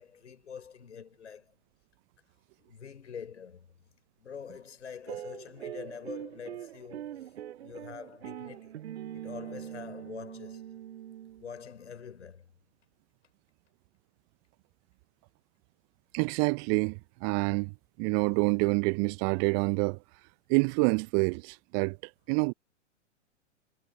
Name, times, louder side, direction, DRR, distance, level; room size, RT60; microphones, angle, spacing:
voice 1, 0.0-1.5 2.6-3.7 4.2-7.3 7.5-8.8 9.1-10.8 11.4-12.5, left 7 dB, 75° left, 6.0 m, -45 dB
sound 1, 5.1-11.6, right 11 dB, 60° right, 1.2 m, -42 dB
voice 2, 16.1-20.0 20.5-22.0 22.3-22.5, right 36 dB, 35° right, 0.9 m, -27 dB
figure-of-eight pair, 105°, 36 cm